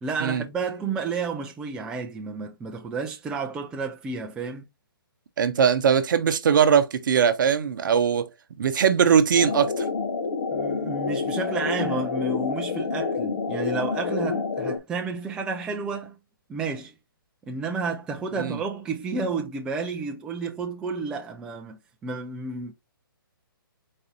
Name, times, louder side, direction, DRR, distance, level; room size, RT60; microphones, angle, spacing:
voice 1, 0.0-4.7 10.5-16.2 16.5-16.9 17.5-22.7, right 4 dB, 5° right, 0.3 m, -31 dB
voice 2, 5.4-8.3 8.6-9.9 18.4-18.6, right 7 dB, 60° right, 0.7 m, -20 dB
sound 1, 9.4-14.8, left 4 dB, 70° left, 0.9 m, -28 dB
4.1 x 2.6 x 3.8 m
hypercardioid pair, 140°, 12 cm